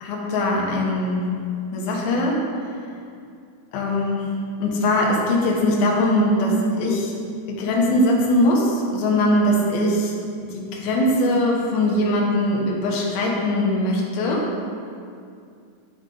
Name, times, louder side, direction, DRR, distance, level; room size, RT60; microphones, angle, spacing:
voice 1, 0.0-1.3 1.7-2.4 3.7-4.3 4.6-7.1 7.5-10.1 10.5-14.5, left 1 dB, 70° left, -2 dB, 2.8 m, -21 dB
11.5 x 5.3 x 3.9 m, 2.4 s
omnidirectional pair, 4.7 m